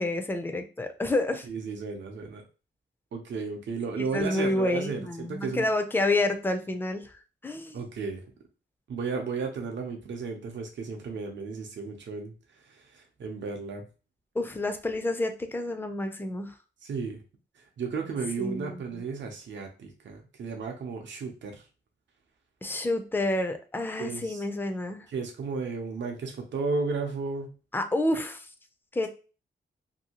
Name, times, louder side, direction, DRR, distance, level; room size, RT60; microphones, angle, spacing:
voice 1, 0.0-1.5 4.0-7.1 7.4-7.8 14.4-16.5 18.4-19.0 22.6-25.1 27.7-28.5 28.9-29.1, left 2 dB, 10° left, 6 dB, 0.3 m, -29 dB
voice 2, 1.5-2.4 3.1-5.7 7.7-8.2 8.9-12.3 12.6-13.8 16.8-17.2 17.6-21.6 24.0-24.5 25.1-27.5, right 4 dB, 70° right, 2 dB, 0.6 m, -34 dB
2.7 x 2.6 x 2.8 m, 0.34 s
wide cardioid pair, 160°, 20 cm